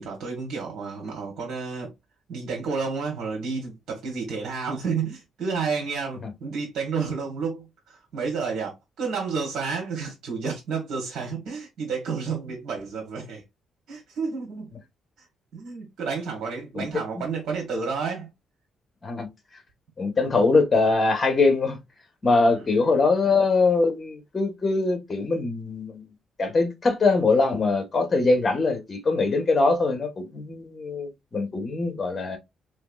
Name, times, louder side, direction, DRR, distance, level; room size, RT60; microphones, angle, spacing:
voice 1, 0.0-1.9 2.3-13.4 13.9-14.7 15.2-15.3 15.5-18.3 22.5-22.6, right 5 dB, 70° right, 1.4 m, -31 dB
voice 2, 20.0-21.8 22.2-26.0 26.4-32.4, left 3 dB, 35° left, 1.3 m, -22 dB
3.5 x 3.1 x 2.4 m
cardioid pair, 90°, 0 cm